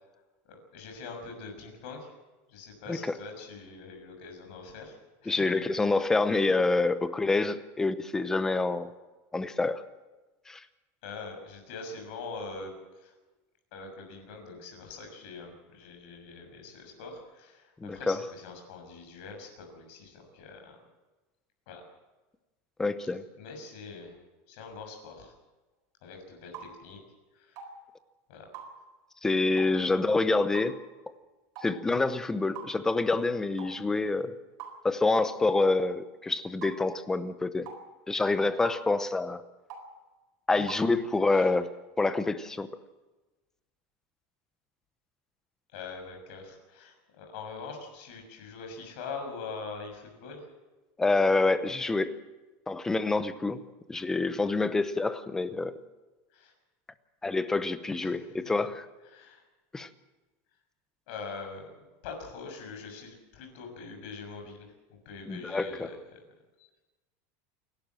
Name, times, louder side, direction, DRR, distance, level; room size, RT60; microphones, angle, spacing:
voice 1, 0.5-2.1 2.5-5.0 5.2-5.3 5.9-6.1 11.0-13.1 13.7-20.8 21.7-21.8 23.4-24.2 24.5-25.3 26.0-27.0 27.3-27.6 28.3-28.4 40.6-40.7 41.3-41.5 45.7-50.5 56.3-56.5 58.0-58.3 59.1-59.4 61.1-61.7 62.0-66.2 66.6-66.7, left 4 dB, 55° left, 4 dB, 6.5 m, -43 dB
voice 2, 5.3-8.9 9.3-9.8 10.5-10.6 17.8-18.3 22.8-23.2 29.2-30.8 31.6-34.4 34.8-37.7 38.1-39.4 40.5-41.7 42.0-42.7 51.0-52.2 52.7-53.6 53.9-55.7 57.2-58.9 59.7-59.9 65.3-65.9, left 3 dB, 5° left, 12 dB, 0.8 m, -27 dB
sound 1, 26.5-26.7 27.6-27.7 28.5-28.7 29.6-29.8 30.5-30.7 31.6-31.7 32.6-32.7 33.6-33.8 34.6-34.8 35.6-35.8 36.6-36.8 37.7-37.8 38.6-38.8 39.7-39.9 40.7-40.9, right 7 dB, 40° right, 4.2 m, -43 dB
28.0 x 12.0 x 7.6 m, 1.1 s
supercardioid pair, 175°, 7 cm